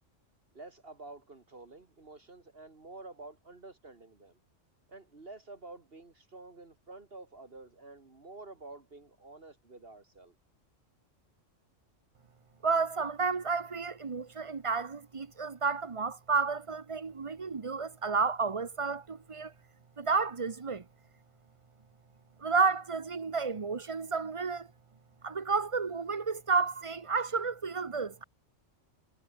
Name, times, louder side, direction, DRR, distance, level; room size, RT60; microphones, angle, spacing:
voice 1, 0.5-4.4 4.9-10.4, right 2 dB, 50° right, 2.4 m, -49 dB
voice 2, 12.6-19.5 20.0-20.8 22.4-24.7 25.2-28.2, right 4 dB, 30° right, 0.8 m, -31 dB
omnidirectional pair, 1.3 m